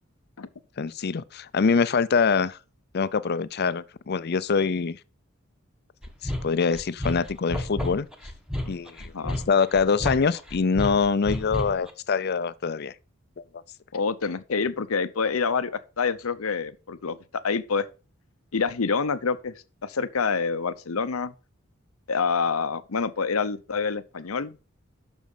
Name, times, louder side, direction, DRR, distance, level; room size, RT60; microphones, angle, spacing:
voice 1, 0.8-2.6 2.9-5.0 6.2-8.1 8.7-12.9, left 5 dB, 50° left, 0.5 m, -24 dB
sound 1, 6.0-11.9, left 1 dB, 5° right, 1.2 m, -32 dB
voice 2, 13.9-17.2 17.4-17.9 18.5-19.5 19.8-21.3 22.1-24.6, left 5 dB, 90° left, 0.8 m, -27 dB
7.2 x 6.3 x 5.6 m
head